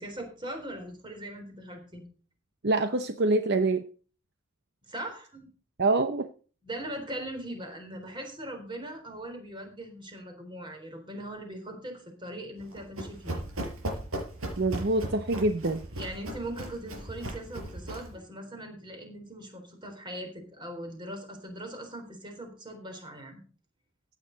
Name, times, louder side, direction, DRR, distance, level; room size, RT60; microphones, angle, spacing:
voice 1, 0.0-2.0 4.9-5.5 6.6-13.4 14.9-15.0 16.0-23.4, right 1 dB, 20° right, 4 dB, 3.8 m, -40 dB
voice 2, 2.6-3.8 5.8-6.3 14.6-15.8, right 2 dB, 50° right, 9 dB, 0.8 m, -25 dB
Run, 12.6-18.2, right 1 dB, 80° right, 5.2 m, -37 dB
15.5 x 9.1 x 4.0 m, 0.38 s
head